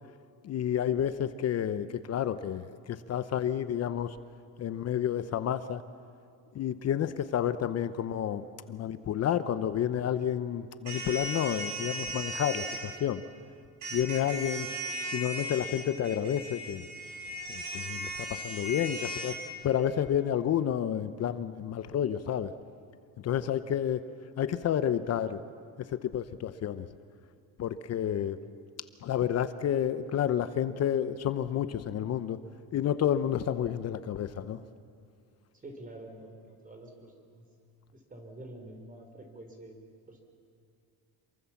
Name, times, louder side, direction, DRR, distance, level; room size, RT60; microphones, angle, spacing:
voice 1, 0.4-4.2 4.6-5.8 6.5-13.2 13.9-14.7 15.1-16.9 17.5-19.4 19.6-22.5 23.2-24.0 24.4-25.4 25.9-26.9 27.6-28.4 29.0-32.4 32.7-34.6, left 10 dB, 40° left, 12 dB, 0.8 m, -30 dB
sound 1, 10.9-12.8 13.8-19.3, equal, 50° right, 6.8 m, -37 dB
voice 2, 35.5-37.5 37.9-40.2, right 1 dB, 20° right, 5 dB, 3.9 m, -48 dB
27.5 x 23.5 x 7.2 m, 2.5 s
cardioid pair, 155°, 38 cm